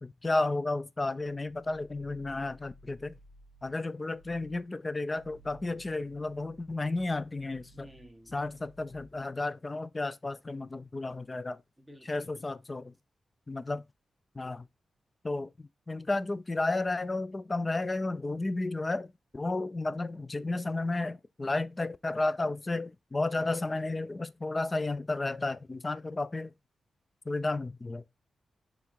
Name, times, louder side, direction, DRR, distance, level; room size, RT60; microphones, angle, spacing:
voice 1, 0.0-3.1 3.6-7.9 8.3-11.6 12.1-12.9 13.5-13.8 14.4-14.7 15.2-15.5 15.9-19.1 19.3-26.5 27.3-28.0, left 2 dB, 25° left, 0.4 m, -32 dB
sound 1, 1.2-3.8 4.1-4.6 5.0-9.3, equal, 80° left, 1.2 m, -57 dB
voice 2, 7.7-8.4 11.8-12.3 23.2-23.6, equal, ahead, 1.0 m, -53 dB
5.9 x 3.6 x 4.6 m
wide cardioid pair, 115°, 0 cm